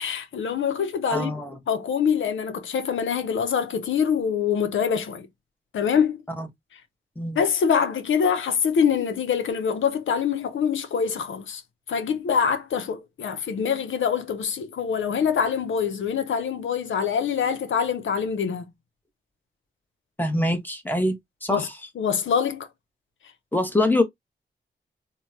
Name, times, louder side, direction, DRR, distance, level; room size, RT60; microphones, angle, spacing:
voice 1, 0.0-1.3 1.7-5.3 5.7-6.2 7.4-11.6 11.9-18.6 21.5-21.7 22.0-22.7, left 7 dB, 85° left, 0.6 m, -24 dB
voice 2, 1.1-1.5 6.4-6.5 7.2-7.4 20.2-21.2 21.4-21.7 23.5-24.0, left 1 dB, 10° left, 1.1 m, -24 dB
3.2 x 2.2 x 2.7 m
cardioid pair, 45°, 20 cm